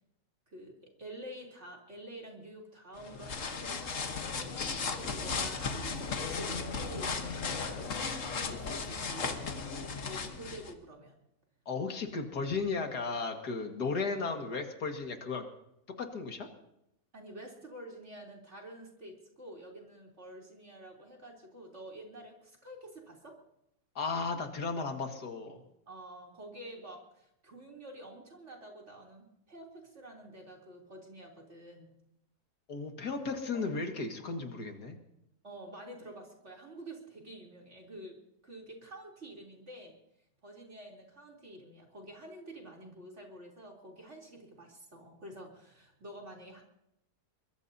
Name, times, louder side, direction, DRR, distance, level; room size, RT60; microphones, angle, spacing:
voice 1, 0.5-11.1 17.1-23.4 25.9-32.0 33.5-33.7 35.4-38.2 38.4-40.0 40.4-46.6, right 1 dB, 45° right, -1 dB, 3.8 m, -48 dB
sound 1, 3.0-10.7, left 4 dB, 55° left, 1.6 m, -36 dB
voice 2, 11.7-15.5 16.0-16.5 24.0-25.6 32.7-35.0, left 4 dB, 85° left, 4 dB, 2.4 m, -35 dB
23.0 x 22.0 x 2.8 m, 0.81 s
omnidirectional pair, 1.7 m